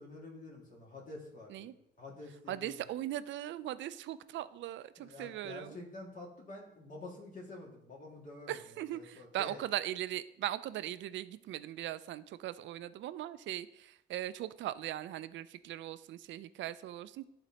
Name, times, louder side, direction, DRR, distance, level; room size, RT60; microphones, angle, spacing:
voice 1, 0.0-1.7 2.0-2.8 5.0-9.6, left 2 dB, 40° left, -2 dB, 2.0 m, -48 dB
voice 2, 2.5-5.8 8.5-17.3, right 13 dB, 70° right, 15 dB, 0.4 m, -39 dB
11.0 x 4.0 x 2.9 m, 0.81 s
cardioid pair, 90°, 20 cm